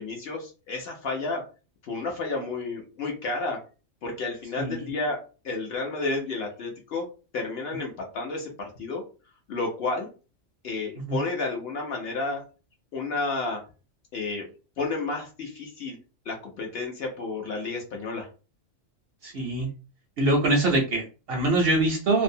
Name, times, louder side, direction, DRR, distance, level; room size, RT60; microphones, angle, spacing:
voice 1, 0.0-1.4 1.8-3.6 4.0-7.1 7.3-9.0 9.5-10.1 10.6-12.4 12.9-13.6 14.1-14.5 14.8-16.0 16.3-18.3, left 3 dB, 60° left, 1 dB, 0.7 m, -31 dB
voice 2, 19.2-19.7 20.2-22.2, right 2 dB, 65° right, 2 dB, 0.6 m, -23 dB
2.5 x 2.0 x 2.6 m, 0.34 s
omnidirectional pair, 1.4 m